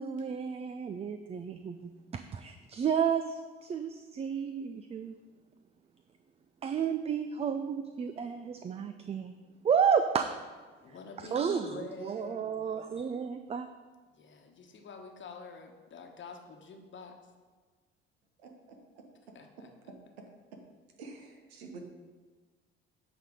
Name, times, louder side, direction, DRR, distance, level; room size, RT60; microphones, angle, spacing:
voice 1, 0.0-5.1 6.6-9.3 9.6-10.3 11.2-13.7, right 7 dB, 20° right, 9 dB, 0.4 m, -32 dB
voice 2, 10.8-13.1 14.1-17.1 19.3-19.7, left 4 dB, 40° left, 4 dB, 1.2 m, -47 dB
voice 3, 18.4-19.0 19.6-20.3 20.5-20.6 21.0-21.8, right 3 dB, 75° right, 3 dB, 1.2 m, -49 dB
9.2 x 4.1 x 5.2 m, 1.4 s
figure-of-eight pair, 55°, 31 cm